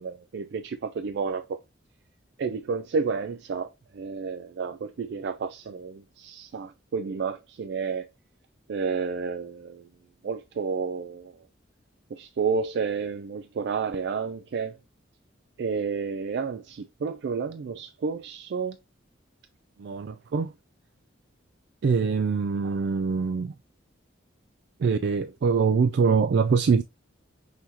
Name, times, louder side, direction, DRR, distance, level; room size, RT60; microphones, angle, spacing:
voice 1, 0.0-1.6 2.4-8.1 8.7-9.9 10.2-11.3 12.1-14.8 15.6-18.8 19.8-20.5 21.8-23.5 24.8-26.8, right 5 dB, 60° right, 0.3 m, -28 dB
5.7 x 2.9 x 2.8 m
head